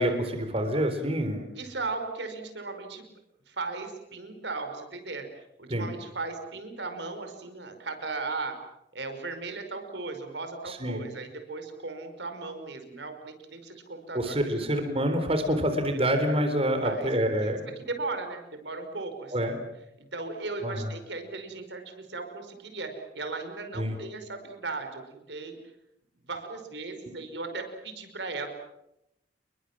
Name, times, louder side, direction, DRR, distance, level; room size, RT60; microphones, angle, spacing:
voice 1, 0.0-1.5 5.7-5.9 10.7-11.0 14.1-17.7 19.3-19.6 20.6-20.9 23.8-23.9, equal, 30° right, 7 dB, 3.9 m, -27 dB
voice 2, 1.6-3.1 3.5-8.6 8.9-14.4 16.8-17.1 17.4-19.5 20.0-25.6 26.3-28.5, right 3 dB, 65° right, 6 dB, 5.4 m, -37 dB
30.0 x 22.5 x 7.5 m, 0.84 s
head